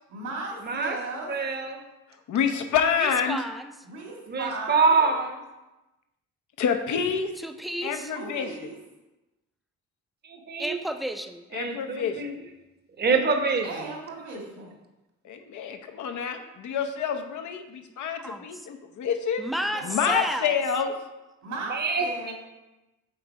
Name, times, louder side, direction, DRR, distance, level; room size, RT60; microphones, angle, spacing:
voice 1, 0.1-1.3 3.8-5.1 8.1-8.8 13.6-14.7 19.7-20.0 21.4-22.3, right 3 dB, 70° right, -1 dB, 2.3 m, -36 dB
voice 2, 0.6-1.0 1.3-1.8 4.3-5.3 10.2-10.8 11.5-12.4 13.0-13.9 21.7-22.3, right 4 dB, 35° right, 5 dB, 1.0 m, -25 dB
voice 3, 2.3-3.4 6.6-7.3 7.8-8.5 11.5-12.3 15.2-19.4 19.8-20.9, left 7 dB, 75° left, 6 dB, 0.9 m, -27 dB
voice 4, 3.0-3.7 7.4-8.1 10.6-11.4 18.2-18.5 19.4-20.6, equal, ahead, 6 dB, 0.5 m, -32 dB
7.9 x 3.9 x 4.7 m, 1.0 s
cardioid pair, 90°, 30 cm